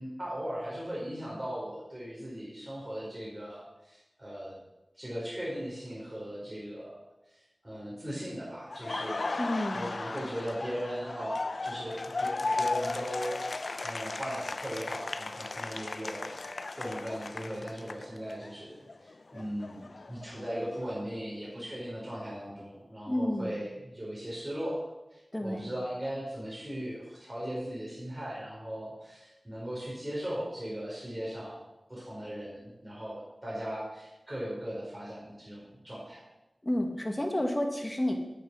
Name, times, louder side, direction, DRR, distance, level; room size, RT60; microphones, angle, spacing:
voice 1, 0.0-4.5 4.9-7.0 7.3-9.2 9.7-24.8 25.1-31.6 31.9-36.2, equal, 25° right, -7 dB, 4.8 m, -38 dB
Laughter, 8.7-18.5 18.9-20.9, left 3 dB, 65° left, 0.6 m, -36 dB
voice 2, 9.4-9.9 23.1-23.6 25.3-25.7 36.6-38.1, left 1 dB, 20° left, 3 dB, 1.8 m, -30 dB
8.9 x 8.9 x 6.3 m, 0.97 s
wide cardioid pair, 65°, 0 cm